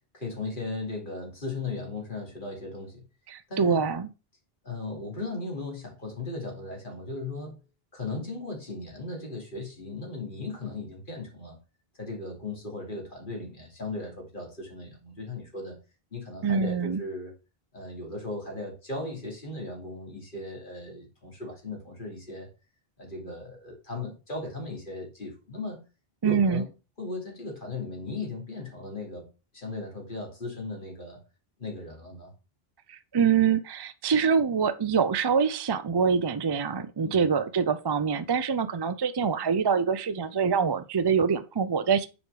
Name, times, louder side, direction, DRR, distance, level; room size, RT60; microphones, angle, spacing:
voice 1, 0.1-3.0 3.5-3.8 4.6-7.6 7.9-11.6 12.0-15.8 16.1-17.3 17.7-22.5 23.0-25.8 26.2-26.7 27.0-29.3 29.5-31.2 31.6-32.3 37.0-37.3, left 3 dB, 55° left, 3.0 m, -37 dB
voice 2, 3.3-4.1 16.4-17.0 26.2-26.6 32.9-42.1, right 6 dB, 40° right, 0.4 m, -25 dB
7.2 x 4.7 x 4.7 m
omnidirectional pair, 1.1 m